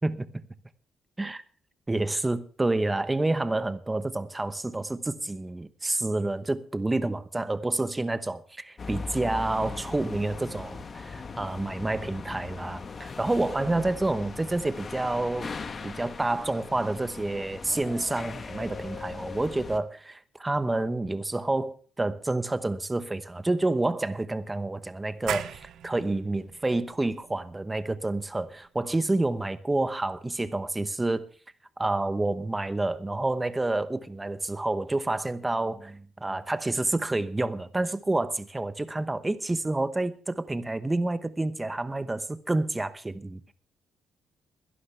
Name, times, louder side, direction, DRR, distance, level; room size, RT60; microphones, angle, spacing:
voice 1, 1.9-15.5 15.8-31.3 31.8-43.5, right 2 dB, 15° right, 0.9 m, -29 dB
sound 1, 8.8-19.8, left 4 dB, 35° left, 1.2 m, -39 dB
sound 2, 25.3-30.7, right 9 dB, 70° right, 0.9 m, -41 dB
22.0 x 11.5 x 3.3 m
cardioid pair, 130°, 0 cm